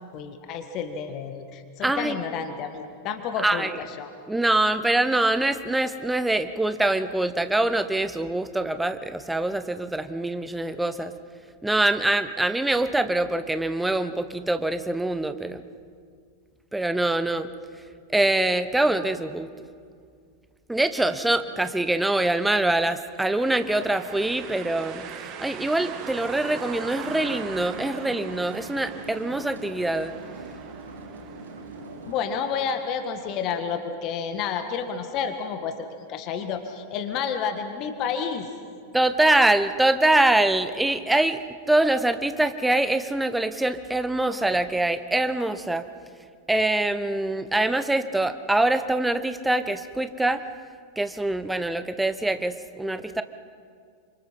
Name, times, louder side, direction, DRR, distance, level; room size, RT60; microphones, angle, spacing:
voice 1, 0.1-4.1 32.0-38.5, left 6 dB, 40° left, 7 dB, 1.7 m, -30 dB
voice 2, 1.8-2.2 3.4-3.7 4.3-11.1 11.6-15.6 16.7-17.5 18.1-19.5 20.7-30.1 38.9-41.4 41.7-45.9 46.5-50.4 51.0-53.2, right 2 dB, 5° right, 11 dB, 1.1 m, -24 dB
sound 1, 23.0-32.8, right 7 dB, 40° right, 2.1 m, -41 dB
sound 2, 27.0-32.1, right 3 dB, 75° right, 2.9 m, -42 dB
28.5 x 26.0 x 5.7 m, 2.2 s
figure-of-eight pair, 90°, 0 cm